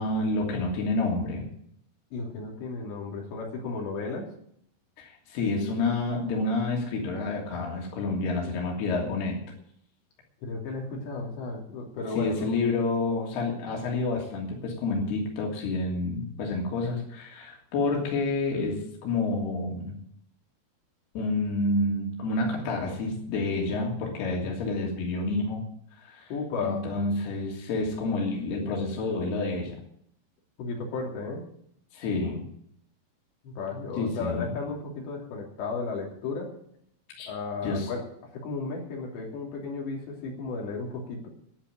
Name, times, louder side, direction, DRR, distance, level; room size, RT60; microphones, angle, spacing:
voice 1, 0.0-1.5 5.0-9.4 12.1-20.0 21.1-25.6 26.0-26.3 26.6-29.8 31.9-32.5 33.9-34.5 37.2-37.3 37.6-37.9, left 3 dB, 70° left, 0 dB, 4.9 m, -29 dB
voice 2, 2.1-4.3 10.4-12.6 26.3-26.8 30.6-31.4 33.4-36.5 37.3-38.0 38.3-41.3, left 4 dB, 85° left, -1 dB, 5.2 m, -34 dB
11.5 x 10.5 x 8.8 m, 0.68 s
omnidirectional pair, 4.9 m